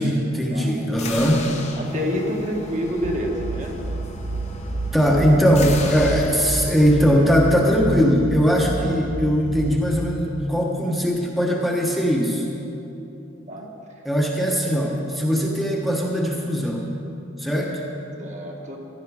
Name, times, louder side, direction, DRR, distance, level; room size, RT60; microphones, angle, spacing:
voice 1, 0.0-1.5 4.9-12.5 14.0-16.9 17.4-17.8, equal, ahead, -2 dB, 1.2 m, -20 dB
sound 1, 0.9-7.0, left 3 dB, 35° left, 1.0 m, -35 dB
voice 2, 1.8-3.8 13.5-13.7 14.4-14.5 18.2-18.8, equal, 35° right, 0 dB, 1.7 m, -28 dB
sound 2, 3.0-10.1, right 2 dB, 70° right, 0.6 m, -30 dB
15.5 x 11.5 x 4.9 m, 2.9 s
head